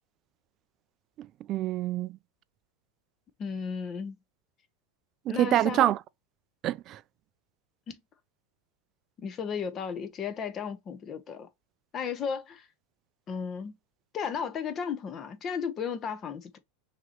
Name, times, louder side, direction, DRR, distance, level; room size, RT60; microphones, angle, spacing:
voice 1, 1.2-2.2 5.3-6.0 6.6-7.0, right 13 dB, 45° right, 0.3 m, -26 dB
voice 2, 3.4-4.2 5.3-5.9 7.9-8.0 9.2-11.5 11.9-12.7 13.3-13.7 14.1-16.6, left 6 dB, 35° left, 0.9 m, -34 dB
5.8 x 2.9 x 2.9 m
hypercardioid pair, 100°, 0 cm